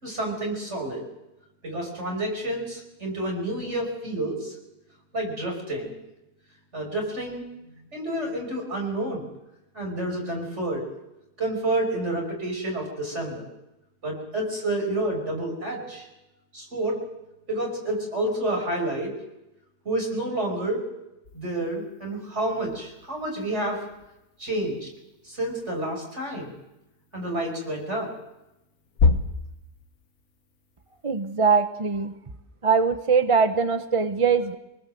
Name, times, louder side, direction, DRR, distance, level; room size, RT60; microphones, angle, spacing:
voice 1, 0.0-1.0 1.6-4.5 5.1-5.9 6.7-7.4 7.9-9.3 9.7-10.9 11.4-13.5 14.0-16.1 16.5-17.0 17.5-19.1 19.8-20.8 21.3-23.8 24.4-24.9 25.2-26.5 27.1-28.1, right 1 dB, 40° right, 1 dB, 5.9 m, -29 dB
sound 1, 21.2-31.3, left 4 dB, 60° left, 1.8 m, -32 dB
voice 2, 31.0-32.1 32.6-34.6, right 5 dB, 25° right, 9 dB, 0.7 m, -22 dB
25.5 x 19.5 x 7.8 m, 0.93 s
omnidirectional pair, 1.8 m